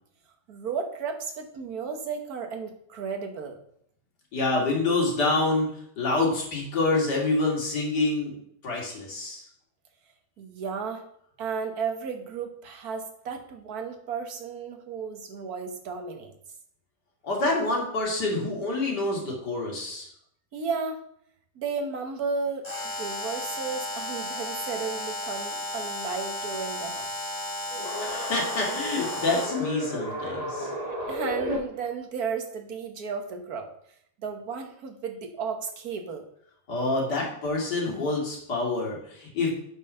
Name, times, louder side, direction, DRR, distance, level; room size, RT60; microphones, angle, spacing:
voice 1, 0.5-3.6 10.4-11.0 11.4-16.3 20.5-21.0 21.5-22.7 23.0-27.1 31.1-33.7 34.2-36.3, right 5 dB, 65° right, 5 dB, 1.7 m, -33 dB
voice 2, 4.3-8.4 8.6-9.5 17.2-20.1 28.0-30.7 36.7-39.5, left 2 dB, 85° left, -2 dB, 3.1 m, -27 dB
Alarm, 22.6-29.7, left 1 dB, 25° left, 2.5 m, -34 dB
sound 1, 27.7-31.6, equal, 25° right, 1.9 m, -33 dB
8.1 x 5.7 x 5.6 m, 0.68 s
omnidirectional pair, 1.8 m